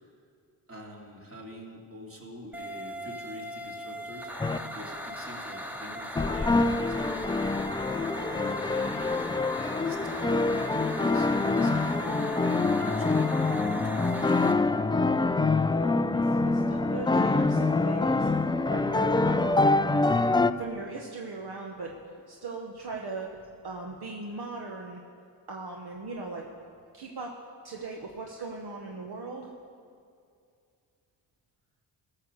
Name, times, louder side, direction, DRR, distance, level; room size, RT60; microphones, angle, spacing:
voice 1, 0.7-7.9 8.3-9.3 9.5-14.3, equal, 30° right, -1 dB, 2.7 m, -45 dB
sound 1, 2.5-14.5, equal, 5° right, 1.3 m, -39 dB
sound 2, 4.4-4.6 6.1-20.5, left 3 dB, 10° left, 0.3 m, -25 dB
voice 2, 15.0-15.5 16.1-18.3 18.7-20.1 20.6-21.9 22.3-23.3 23.6-25.0 25.5-26.5 26.9-27.3 27.6-29.5, right 3 dB, 60° right, 0 dB, 1.2 m, -39 dB
14.0 x 6.8 x 6.5 m, 2.3 s
supercardioid pair, 50°, 45 cm